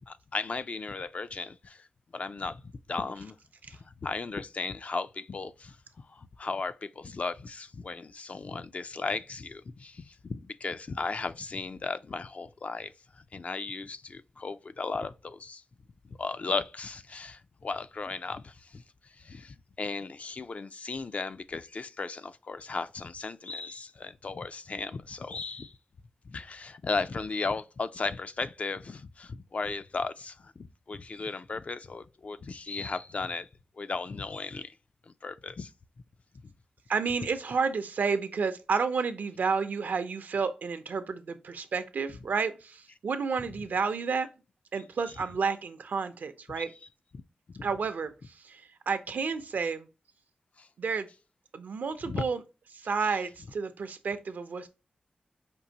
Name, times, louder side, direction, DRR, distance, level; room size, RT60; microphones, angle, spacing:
voice 1, 0.1-1.9 2.1-3.4 3.7-15.6 16.0-25.8 26.2-33.5 33.8-34.8 35.1-35.7 46.6-46.7 47.5-47.7 50.6-50.7 52.0-52.3, left 4 dB, 50° left, 0.3 m, -36 dB
voice 2, 36.9-44.3 44.7-46.7 47.6-49.9 50.8-51.1 51.5-52.4 52.7-54.7, right 5 dB, 80° right, 0.5 m, -31 dB
5.3 x 2.6 x 2.8 m
cardioid pair, 70°, 3 cm